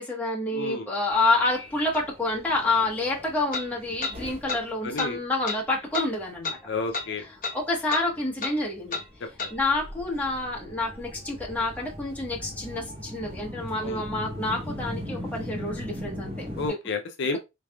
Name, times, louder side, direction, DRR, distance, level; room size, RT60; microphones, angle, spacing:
voice 1, 0.0-6.6 7.2-9.0 9.5-16.5, left 2 dB, 10° left, 1.2 m, -28 dB
voice 2, 0.5-0.9 4.8-5.2 6.7-7.2 9.4-9.5 13.8-14.0 16.6-17.4, left 3 dB, 60° left, 0.5 m, -30 dB
Subway metro underground, 1.1-16.7, left 1 dB, 30° right, 0.9 m, -40 dB
sound 1, 1.9-2.0 3.5-3.7 4.0-4.2 4.5-4.6 5.0-5.1 5.5-5.6 5.9-6.1 6.4-6.6 6.9-7.1 7.4-7.6 7.9-8.1 8.4-8.6 8.9-9.1 9.4-9.5, left 4 dB, 45° left, 1.0 m, -31 dB
4.0 x 3.3 x 2.3 m
head